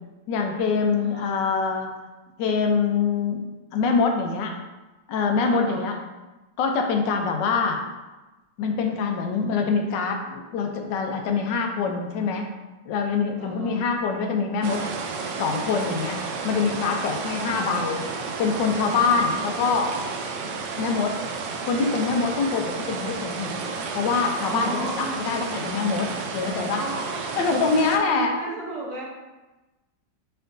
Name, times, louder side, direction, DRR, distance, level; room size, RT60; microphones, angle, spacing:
voice 1, 0.3-1.9 2.4-3.4 3.7-4.5 5.1-6.0 6.6-7.8 8.6-12.5 12.9-14.9 15.4-16.2 16.4-18.0 18.4-19.9 20.7-21.2 21.6-23.6 23.9-26.8 27.4-28.3, left 5 dB, 75° left, 3 dB, 1.2 m, -24 dB
voice 2, 1.0-1.3 5.5-5.9 13.4-13.8 17.3-18.0 19.2-19.6 24.4-25.5 26.7-27.4 28.1-29.1, right 2 dB, 50° right, -4 dB, 1.2 m, -35 dB
sound 1, 14.6-28.0, right 4 dB, 75° right, 1.2 m, -32 dB
4.5 x 4.3 x 2.6 m, 1.1 s
omnidirectional pair, 2.1 m